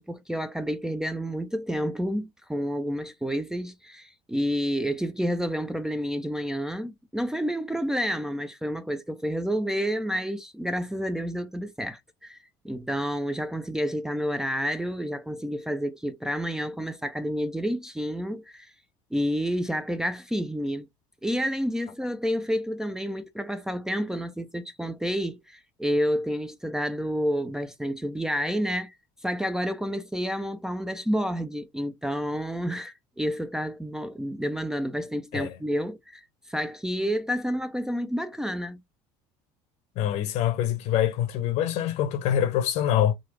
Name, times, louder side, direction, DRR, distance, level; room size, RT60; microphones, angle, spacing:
voice 1, 0.0-18.7 19.1-20.9 21.2-28.9 29.2-38.8, equal, 5° right, 0.5 m, -29 dB
voice 2, 40.0-43.1, left 10 dB, 65° left, 0.9 m, -25 dB
3.9 x 2.4 x 3.2 m
supercardioid pair, 90°, 12 cm